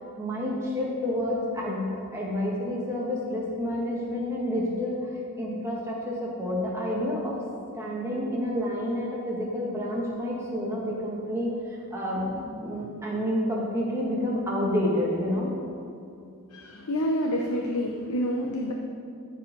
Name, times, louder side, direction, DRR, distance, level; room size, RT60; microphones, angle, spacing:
voice 1, 0.2-5.1 5.4-7.4 7.7-15.5, left 1 dB, 10° right, -4 dB, 1.8 m, -29 dB
voice 2, 16.5-18.7, equal, 85° left, 1 dB, 0.8 m, -28 dB
13.5 x 5.3 x 5.3 m, 2.5 s
head